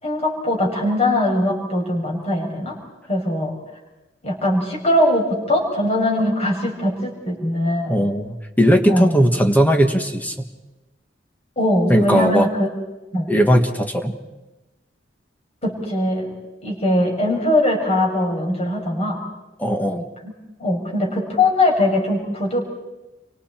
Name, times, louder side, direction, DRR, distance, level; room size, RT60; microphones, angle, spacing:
voice 1, 0.0-2.8 3.1-3.5 4.2-8.0 8.9-9.2 11.6-12.7 13.1-13.3 15.6-16.3 16.6-19.2 20.2-20.3 20.6-22.6, left 1 dB, 35° left, -1 dB, 6.1 m, -21 dB
voice 2, 7.9-10.5 11.9-12.5 13.3-14.1 19.6-20.0, equal, 10° left, 5 dB, 1.5 m, -18 dB
29.5 x 24.5 x 4.5 m, 1.1 s
head